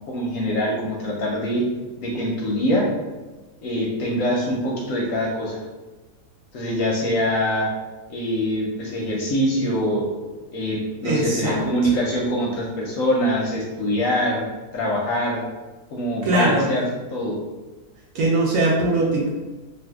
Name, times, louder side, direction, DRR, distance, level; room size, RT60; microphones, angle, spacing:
voice 1, 0.1-1.6 2.0-2.9 3.6-5.7 6.5-7.7 8.1-10.1 10.5-14.5 14.7-15.5 15.9-17.4, equal, 70° left, -2 dB, 0.9 m, -24 dB
voice 2, 11.0-11.9 16.2-16.7 18.1-19.4, right 2 dB, 65° right, -3 dB, 0.9 m, -21 dB
2.6 x 2.4 x 3.4 m, 1.2 s
omnidirectional pair, 1.7 m